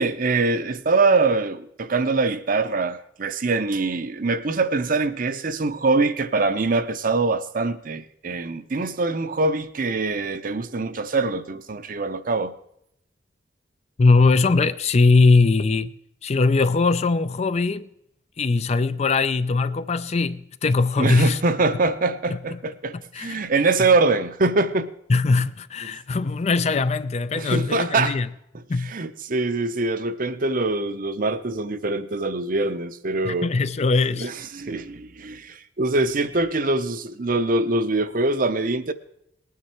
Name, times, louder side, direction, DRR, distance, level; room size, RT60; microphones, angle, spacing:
voice 1, 0.0-12.5 21.0-24.9 25.8-25.9 27.4-28.2 28.9-33.5 34.2-38.9, right 3 dB, 50° right, 0.7 m, -23 dB
voice 2, 14.0-15.9 16.2-17.9 18.4-21.4 22.3-22.6 23.1-23.4 25.1-28.3 28.7-28.9 33.2-34.3, left 3 dB, 35° left, 0.4 m, -20 dB
19.0 x 9.5 x 4.4 m
head